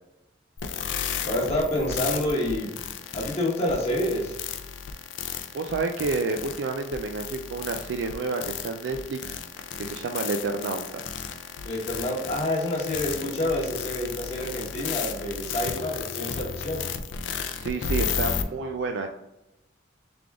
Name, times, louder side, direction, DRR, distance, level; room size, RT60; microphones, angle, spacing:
sound 1, 0.6-18.4, left 7 dB, 85° left, 0.4 m, -33 dB
voice 1, 1.2-2.7 3.1-4.4 11.6-16.8, left 1 dB, 30° left, -4 dB, 1.0 m, -28 dB
voice 2, 5.5-9.4 9.8-11.0 17.6-19.1, right 3 dB, 80° right, 5 dB, 0.3 m, -29 dB
3.7 x 3.4 x 3.4 m, 0.94 s
head